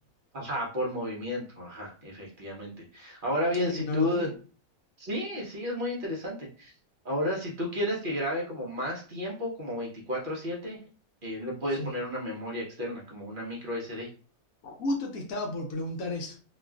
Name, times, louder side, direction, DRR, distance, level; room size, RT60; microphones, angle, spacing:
voice 1, 0.3-4.3 5.0-6.7 7.0-10.8 11.2-14.1, left 1 dB, 50° right, -2 dB, 0.6 m, -32 dB
voice 2, 3.6-4.3 11.8-11.9 14.6-16.4, left 1 dB, 65° left, 1 dB, 1.0 m, -32 dB
2.9 x 2.4 x 2.3 m, 0.38 s
omnidirectional pair, 1.7 m